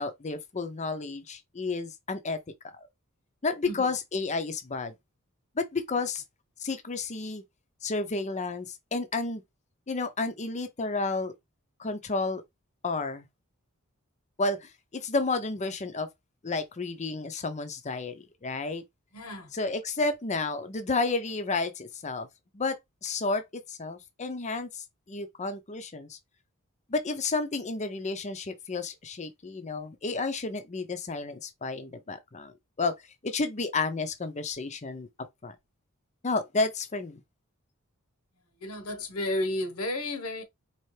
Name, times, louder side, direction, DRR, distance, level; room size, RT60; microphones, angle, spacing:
voice 1, 0.0-2.4 2.6-2.7 3.4-4.9 5.6-6.2 6.6-7.4 7.8-9.4 9.9-11.3 11.8-12.4 12.8-13.3 14.4-16.1 16.4-18.8 19.5-22.3 22.5-26.2 26.9-32.5 32.8-32.9 33.2-35.1 35.4-35.5 36.2-37.2, left 3 dB, 30° left, 0.7 m, -31 dB
voice 2, 19.1-19.5 38.6-40.4, left 1 dB, 85° left, 1.2 m, -32 dB
4.4 x 3.1 x 3.2 m
head